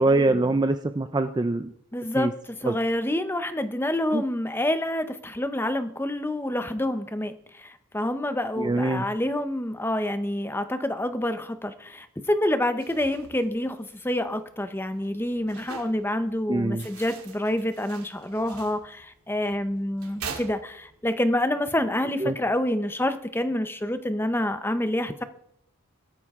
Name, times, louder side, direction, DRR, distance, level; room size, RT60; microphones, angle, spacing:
voice 1, 0.0-1.7 2.1-2.3 2.6-2.8 4.1-4.2 8.6-9.0 16.5-16.9 22.2-22.3, right 2 dB, 20° right, 9 dB, 0.4 m, -23 dB
voice 2, 1.9-25.2, left 1 dB, 10° left, 10 dB, 0.7 m, -27 dB
sound 1, 12.6-21.2, right 5 dB, 85° right, 2.5 m, -44 dB
17.0 x 13.0 x 3.7 m, 0.71 s
head